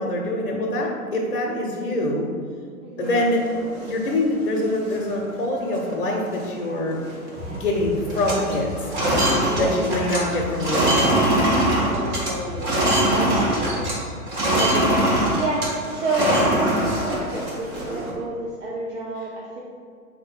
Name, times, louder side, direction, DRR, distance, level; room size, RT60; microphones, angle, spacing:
voice 1, 0.0-2.3 3.0-3.4 3.8-7.0 7.5-8.9 9.6-11.2, left 1 dB, 60° left, -1 dB, 0.7 m, -24 dB
voice 2, 1.2-1.6 2.8-3.2 7.3-7.7 9.5-9.8 10.2-10.4 11.9-12.8 13.1-14.0 14.5-15.0 15.4-19.6, right 2 dB, 55° right, -5 dB, 0.7 m, -30 dB
sound 1, 3.0-4.1 4.6-4.7 4.9-5.3 5.7-5.9 6.2-7.3 7.5-7.8 8.0-14.0 14.3-18.1, right 1 dB, 15° right, 0.5 m, -23 dB
sound 2, 7.3-14.1, left 1 dB, 20° left, 0.8 m, -36 dB
3.8 x 2.7 x 4.4 m, 2.2 s
figure-of-eight pair, 115°, 45 cm